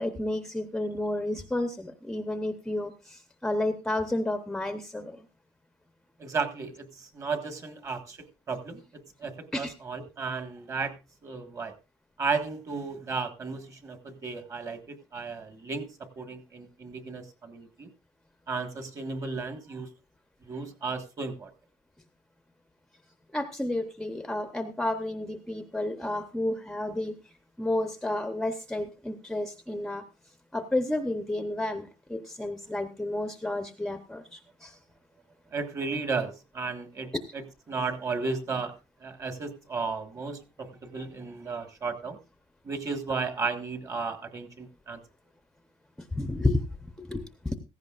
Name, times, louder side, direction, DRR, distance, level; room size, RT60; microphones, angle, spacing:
voice 1, 0.0-5.2 9.5-9.7 23.3-27.2 27.6-30.0 30.5-34.8 37.1-37.2 46.1-46.6 47.0-47.6, left 1 dB, 5° left, 0.8 m, -31 dB
voice 2, 6.2-8.2 8.5-8.8 9.2-11.0 11.2-11.7 12.2-17.9 18.5-19.9 20.4-21.5 35.5-37.4 37.7-38.7 39.0-42.2 42.6-45.0, right 4 dB, 25° right, 1.5 m, -34 dB
16.0 x 14.5 x 2.4 m
cardioid pair, 170°, 12 cm